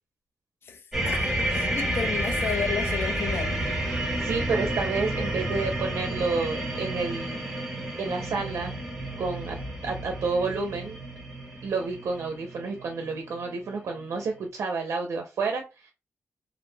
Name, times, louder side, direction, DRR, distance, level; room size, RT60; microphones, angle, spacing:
voice 1, 0.6-3.6, left 6 dB, 50° left, 0.4 m, -33 dB
sound 1, 0.9-13.8 14.0-14.3, right 1 dB, 5° right, 0.8 m, -30 dB
voice 2, 3.9-7.4 8.0-8.8 9.2-9.6 9.8-11.0 11.6-15.9, right 4 dB, 70° right, 0.4 m, -30 dB
2.4 x 2.1 x 3.1 m
wide cardioid pair, 160°, 5 cm